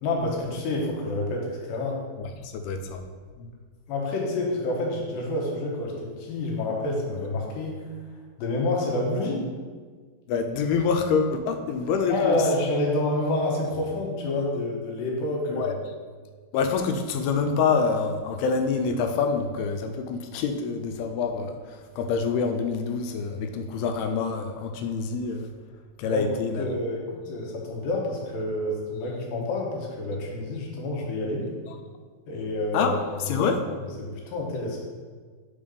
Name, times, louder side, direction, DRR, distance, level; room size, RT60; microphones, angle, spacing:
voice 1, 0.0-2.0 3.4-3.5 3.9-7.8 8.4-9.5 12.1-15.7 26.0-26.3 26.6-31.5 32.3-32.9 33.3-33.4 34.0-34.8, left 2 dB, 70° left, -1 dB, 2.6 m, -28 dB
voice 2, 2.2-3.0 10.3-12.4 15.5-15.8 16.5-25.5 26.0-26.7 32.7-33.6, left 5 dB, 90° left, 6 dB, 2.6 m, -26 dB
5.2 x 4.6 x 5.1 m, 1.5 s
omnidirectional pair, 4.5 m